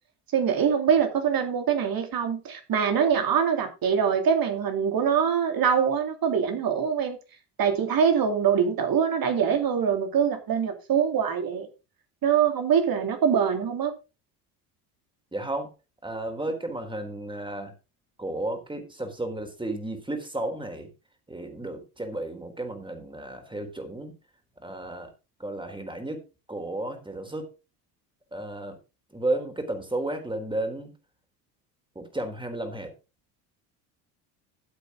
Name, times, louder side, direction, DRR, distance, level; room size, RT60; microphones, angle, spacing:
voice 1, 0.3-7.2 7.6-11.7 12.2-13.9, right 7 dB, 50° right, 3.0 m, -24 dB
voice 2, 15.3-15.7 16.0-17.8 18.2-20.9 21.3-24.1 24.6-25.1 25.4-26.2 26.5-27.5 28.3-28.8 29.1-30.9 32.0-32.9, right 1 dB, 10° right, 3.9 m, -33 dB
13.5 x 8.1 x 3.8 m
hypercardioid pair, 70°, 46 cm